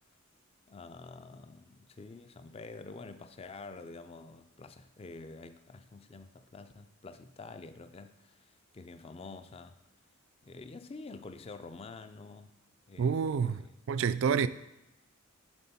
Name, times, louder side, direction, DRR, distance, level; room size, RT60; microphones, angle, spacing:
voice 1, 0.7-9.8 10.4-12.5 12.9-13.8 14.4-14.5, left 3 dB, 25° left, 0.4 m, -48 dB
voice 2, 13.0-13.6 13.9-14.5, right 6 dB, 60° right, 0.3 m, -28 dB
10.5 x 3.8 x 4.2 m
head